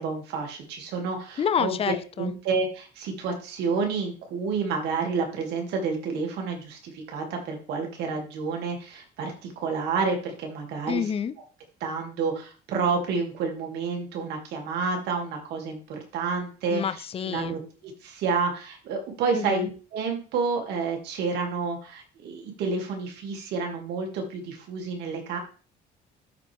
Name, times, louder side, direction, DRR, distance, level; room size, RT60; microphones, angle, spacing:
voice 1, 0.0-1.7 2.2-11.0 11.8-16.8 17.2-25.4, right 4 dB, 80° right, 2 dB, 2.6 m, -29 dB
voice 2, 1.4-2.3 10.9-11.3 16.7-17.6 19.3-19.7, left 8 dB, 35° left, 14 dB, 0.6 m, -28 dB
12.5 x 4.6 x 3.5 m, 0.36 s
cardioid pair, 110°, 17 cm